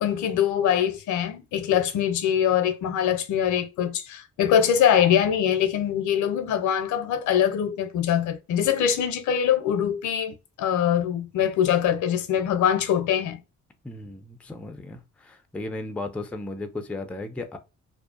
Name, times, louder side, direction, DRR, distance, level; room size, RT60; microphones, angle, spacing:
voice 1, 0.0-13.4, left 9 dB, 75° left, 0.5 m, -23 dB
voice 2, 13.8-17.6, left 2 dB, 5° left, 0.3 m, -35 dB
2.6 x 2.1 x 2.4 m
cardioid pair, 90°, 30 cm